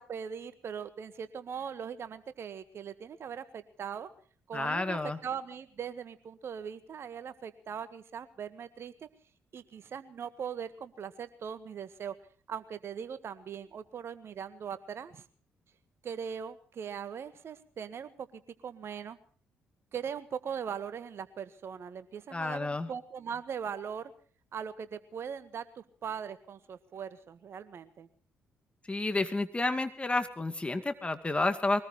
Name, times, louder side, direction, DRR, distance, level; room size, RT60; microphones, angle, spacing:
voice 1, 0.0-4.1 4.5-8.9 9.5-12.1 12.5-15.2 16.0-19.2 19.9-24.1 24.5-28.1, right 7 dB, 55° right, 12 dB, 1.6 m, -40 dB
voice 2, 4.5-5.2 22.3-22.9 28.9-31.8, left 2 dB, 20° left, 8 dB, 2.2 m, -30 dB
23.0 x 19.0 x 3.2 m, 0.44 s
hypercardioid pair, 45°, 5 cm